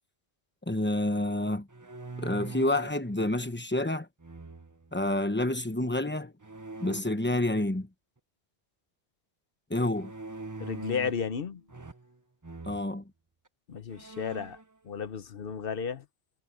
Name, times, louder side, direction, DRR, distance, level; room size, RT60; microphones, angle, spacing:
voice 1, 0.7-1.7 2.2-4.1 4.9-6.3 6.8-7.9 9.7-10.1 12.6-13.0, left 1 dB, 10° left, 1.0 m, -28 dB
sound 1, 1.7-3.0 4.2-4.9 6.4-7.0 9.9-11.3 11.7-12.2 12.4-12.8 13.5-13.6 13.9-14.6, right 3 dB, 20° right, 0.7 m, -42 dB
voice 2, 10.6-11.6 13.7-14.6 14.8-16.0, left 6 dB, 60° left, 1.1 m, -33 dB
omnidirectional pair, 1.1 m